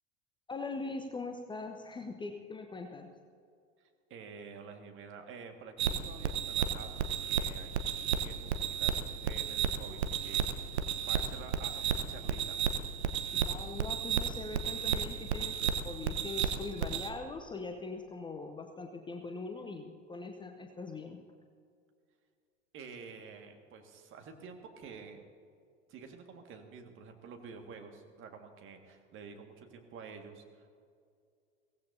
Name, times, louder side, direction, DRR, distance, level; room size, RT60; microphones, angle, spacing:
voice 1, 0.5-3.1 13.3-21.2, left 3 dB, 15° left, 4 dB, 0.8 m, -42 dB
voice 2, 3.8-7.0 7.2-9.0 9.2-12.6 22.7-25.2 25.9-30.7, right 5 dB, 35° right, 4 dB, 1.9 m, -49 dB
sound 1, 5.8-17.1, right 8 dB, 60° right, 1.1 m, -33 dB
22.5 x 17.0 x 2.7 m, 2.3 s
figure-of-eight pair, 85°, 36 cm